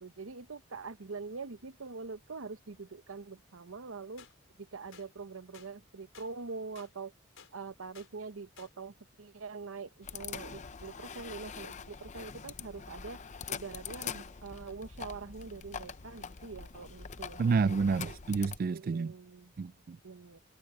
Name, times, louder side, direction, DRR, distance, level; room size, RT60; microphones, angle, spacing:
voice 1, 0.0-4.3 4.6-7.1 7.5-13.2 13.5-17.4 18.0-18.2 18.7-19.5 20.0-20.4, right 4 dB, 85° right, 0.9 m, -44 dB
sound 1, 4.2-4.3 4.9-5.1 5.5-5.7 6.1-6.3 6.8-6.9 7.4-7.5 7.9-8.1 8.6-8.7, left 7 dB, 75° left, 4.3 m, -54 dB
sound 2, 10.0-18.6, left 6 dB, 35° left, 0.6 m, -44 dB
voice 2, 17.4-19.1 19.6-20.0, right 5 dB, 45° right, 0.3 m, -29 dB
head